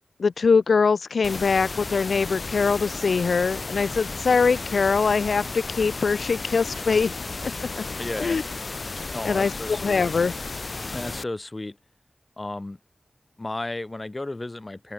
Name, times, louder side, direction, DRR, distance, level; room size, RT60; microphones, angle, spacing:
voice 1, 0.2-7.1 7.4-7.5 7.8-7.9 8.2-8.4 9.2-10.3, left 5 dB, 90° left, 0.4 m, -22 dB
sound 1, 1.2-11.2, left 3 dB, 60° left, 0.9 m, -34 dB
voice 2, 8.0-8.4 9.1-10.0 10.9-11.8 12.4-12.8 13.4-14.9, left 2 dB, 35° left, 1.0 m, -33 dB
cardioid pair, 50°, 0 cm